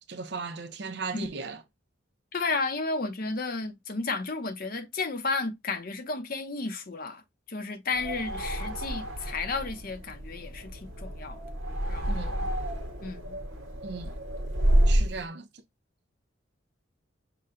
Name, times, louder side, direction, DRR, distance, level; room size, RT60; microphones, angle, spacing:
voice 1, 0.1-1.6 12.1-12.3 13.8-14.2 14.9-15.5, right 4 dB, 55° right, 0.5 m, -37 dB
voice 2, 2.3-7.2 7.5-11.4 11.9-12.4 13.0-13.4, left 3 dB, 45° left, 0.7 m, -33 dB
sound 1, 7.9-15.2, right 1 dB, 80° right, 1.1 m, -29 dB
5.7 x 2.2 x 3.7 m
head